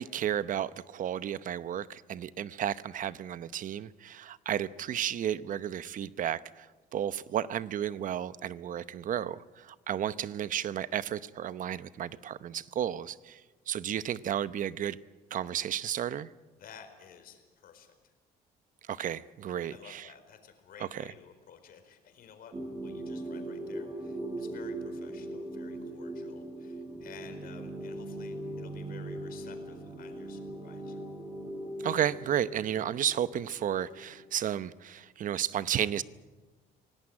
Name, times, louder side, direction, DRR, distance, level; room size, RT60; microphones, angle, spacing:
voice 1, 0.0-6.7 6.9-13.4 13.7-15.0 15.3-16.3 18.9-20.0 20.9-21.0 31.8-36.0, right 10 dB, 50° right, 0.8 m, -33 dB
voice 2, 16.6-17.9 19.7-22.5 22.8-31.0, left 7 dB, 60° left, 4.5 m, -53 dB
sound 1, 22.5-34.4, right 1 dB, 25° right, 4.3 m, -40 dB
25.5 x 18.0 x 8.8 m
cardioid pair, 110°, 17 cm